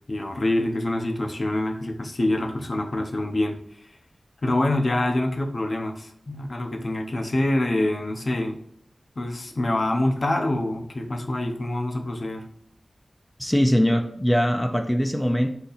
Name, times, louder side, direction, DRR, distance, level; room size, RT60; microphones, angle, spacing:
voice 1, 0.0-4.0 4.4-8.6 9.2-12.4, left 1 dB, 55° left, 3 dB, 0.7 m, -26 dB
voice 2, 13.4-15.5, equal, 10° left, 3 dB, 0.4 m, -21 dB
4.1 x 2.9 x 4.0 m, 0.69 s
wide cardioid pair, 65°, 0 cm